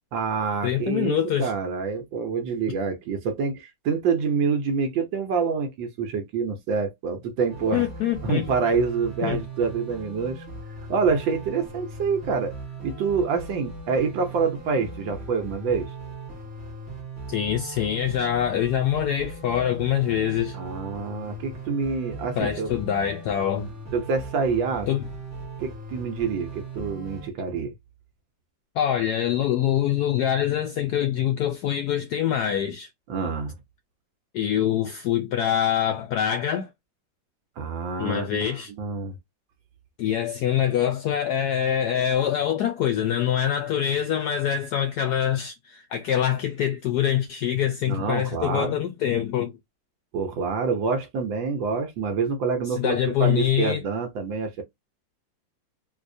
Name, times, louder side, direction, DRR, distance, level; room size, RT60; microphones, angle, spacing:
voice 1, 0.1-7.9 8.2-10.4 10.9-12.5 12.8-15.9 20.5-22.7 23.9-24.9 25.6-27.7 33.1-33.5 37.6-39.2 47.9-48.8 50.1-54.6, right 5 dB, 80° right, 1.4 m, -27 dB
voice 2, 0.6-1.5 7.7-8.5 9.2-9.4 17.3-20.6 22.4-23.7 24.9-25.0 28.8-32.9 34.3-36.7 38.0-38.7 40.0-49.5 52.7-53.8, left 10 dB, 75° left, 0.9 m, -24 dB
sound 1, 7.5-27.3, right 3 dB, 10° right, 0.8 m, -39 dB
3.8 x 2.7 x 2.6 m
omnidirectional pair, 2.1 m